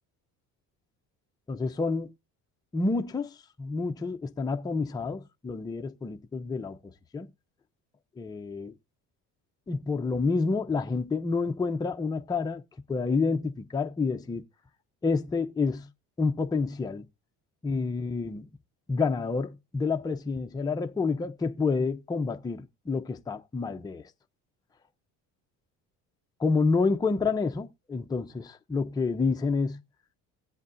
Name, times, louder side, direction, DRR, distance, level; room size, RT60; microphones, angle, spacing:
voice 1, 1.5-2.1 2.7-6.8 7.1-7.3 8.2-8.7 9.7-12.6 12.9-14.4 15.0-15.9 16.2-17.0 17.6-18.5 18.9-24.0 26.4-29.8, left 4 dB, 10° left, 0.6 m, -28 dB
18.5 x 8.2 x 2.6 m
cardioid pair, 125°, 34 cm